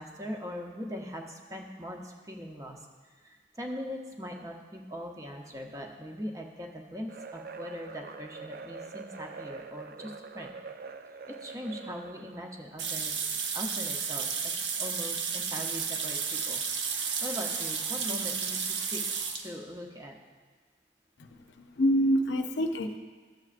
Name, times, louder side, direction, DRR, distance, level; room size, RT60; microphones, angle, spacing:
voice 1, 0.0-10.5 11.3-13.1 13.5-16.6 16.9-19.0 19.4-20.1, equal, 20° right, 1 dB, 0.7 m, -41 dB
sound 1, 7.1-12.5, right 4 dB, 50° right, 0.3 m, -44 dB
sound 2, 12.8-19.5, right 6 dB, 85° right, 0.8 m, -32 dB
voice 2, 21.2-23.0, equal, 80° left, 6 dB, 0.6 m, -27 dB
13.0 x 7.5 x 2.5 m, 1.4 s
head